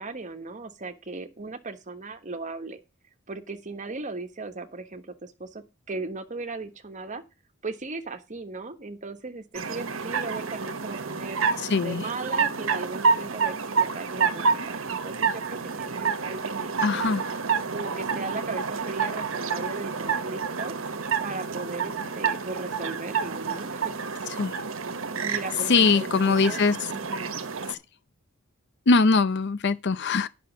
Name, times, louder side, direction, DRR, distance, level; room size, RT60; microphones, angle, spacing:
voice 1, 0.0-2.8 3.3-7.2 7.6-11.4 11.8-17.1 17.7-20.7 21.2-24.0 25.2-26.6 26.9-27.4, right 3 dB, 35° right, 1.3 m, -37 dB
sound 1, 9.5-27.7, right 5 dB, 70° right, 1.2 m, -29 dB
voice 2, 11.7-12.0 16.8-17.3 24.4-24.5 25.7-26.8 28.9-30.3, left 4 dB, 55° left, 0.7 m, -21 dB
9.4 x 6.2 x 6.0 m
head